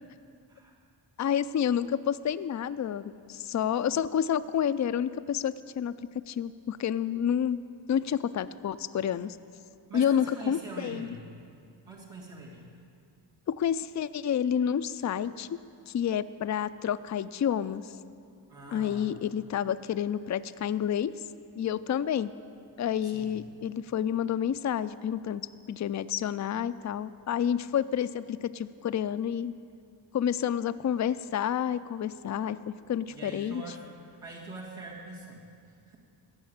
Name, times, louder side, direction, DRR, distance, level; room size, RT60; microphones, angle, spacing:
voice 1, 1.2-3.0 3.3-5.9 6.3-7.6 7.9-9.4 9.9-11.1 13.5-15.6 15.9-17.9 18.7-21.1 21.6-22.3 22.8-29.5 30.1-32.6 32.9-33.6, left 9 dB, 40° left, 14 dB, 0.4 m, -29 dB
voice 2, 9.9-11.3 11.9-12.7 18.5-19.1 23.0-23.4 33.1-35.5 35.9-36.0, right 2 dB, 85° right, -5 dB, 1.9 m, -44 dB
15.0 x 5.7 x 8.7 m, 2.4 s
cardioid pair, 40°, 50 cm